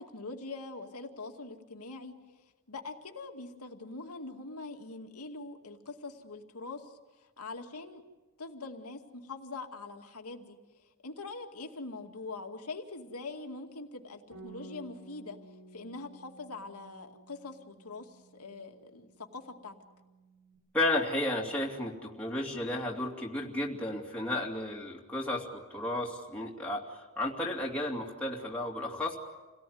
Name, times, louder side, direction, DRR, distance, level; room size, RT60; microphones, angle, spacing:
voice 1, 0.0-2.1 2.7-8.0 8.4-10.6 11.0-15.4 15.7-19.7, left 3 dB, 90° left, 4 dB, 2.3 m, -43 dB
Bass guitar, 14.3-20.6, right 2 dB, 80° right, 7.8 m, -54 dB
voice 2, 20.7-26.8 27.2-29.2, left 1 dB, 5° left, -3 dB, 2.7 m, -33 dB
28.0 x 18.0 x 9.4 m, 1.2 s
head